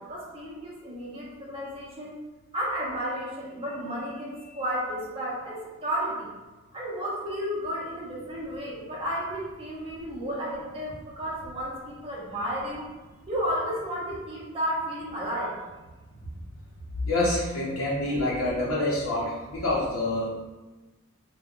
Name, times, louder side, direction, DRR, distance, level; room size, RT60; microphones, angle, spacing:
voice 1, 0.0-2.2 2.5-6.3 6.7-12.8 13.3-15.6, equal, 25° right, -5 dB, 0.7 m, -32 dB
voice 2, 17.1-20.3, left 1 dB, 80° left, -7 dB, 0.7 m, -27 dB
3.5 x 2.2 x 2.3 m, 1.2 s
head